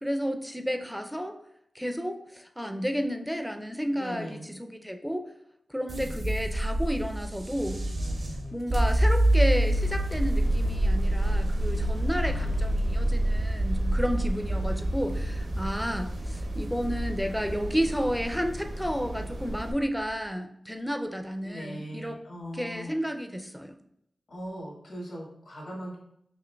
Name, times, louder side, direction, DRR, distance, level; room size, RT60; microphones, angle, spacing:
voice 1, 0.0-1.4 1.8-5.3 5.7-7.8 8.5-22.2 22.5-23.7, equal, ahead, 5 dB, 0.4 m, -31 dB
voice 2, 3.9-4.5 12.2-12.7 21.4-23.0 24.3-26.0, equal, 80° left, -3 dB, 1.3 m, -40 dB
sound 1, 5.9-20.1, right 1 dB, 50° right, 0.6 m, -27 dB
sound 2, 9.7-19.7, equal, 75° right, 1.0 m, -37 dB
6.0 x 2.6 x 2.2 m, 0.75 s
wide cardioid pair, 70°, 0 cm